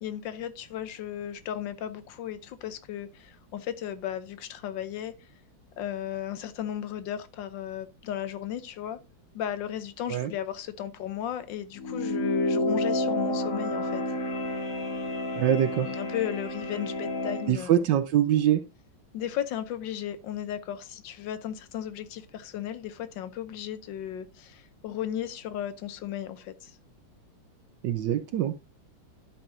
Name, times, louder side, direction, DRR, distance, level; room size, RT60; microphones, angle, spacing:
voice 1, 0.0-5.1 5.8-9.0 9.3-14.0 15.8-17.9 19.1-26.8, left 10 dB, 70° left, 1.4 m, -35 dB
sound 1, 11.8-17.5, left 1 dB, 50° left, 1.3 m, -30 dB
voice 2, 15.4-15.9 17.5-18.6 27.8-28.5, right 11 dB, 70° right, 1.2 m, -24 dB
12.0 x 5.7 x 2.6 m
omnidirectional pair, 2.2 m